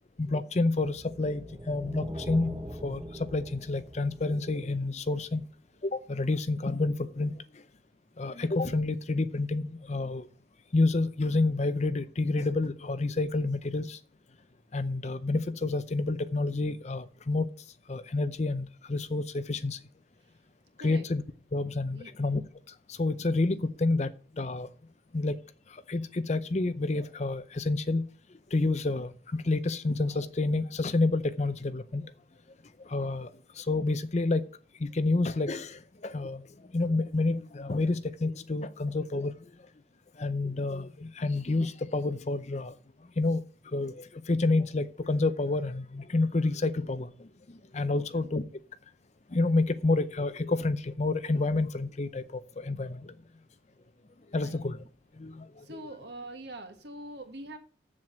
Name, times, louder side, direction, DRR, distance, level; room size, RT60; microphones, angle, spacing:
voice 1, 0.2-2.5 2.8-5.4 5.8-7.3 8.2-10.3 10.7-14.0 14.7-17.5 17.9-19.8 20.8-21.2 21.5-22.4 22.7-24.1 24.4-24.7 25.1-25.4 25.7-28.0 28.5-32.0 32.8-34.4 34.8-39.3 40.2-42.7 43.2-43.4 43.7-48.4 49.3-53.1 54.3-54.8 55.2-55.8, left 2 dB, 35° left, 13 dB, 0.6 m, -29 dB
sound 1, 1.0-5.2, equal, 15° right, 0.8 m, -41 dB
voice 2, 47.9-48.2 54.4-54.6 55.6-57.6, right 1 dB, 55° right, 7 dB, 1.4 m, -43 dB
7.6 x 7.5 x 6.4 m, 0.40 s
head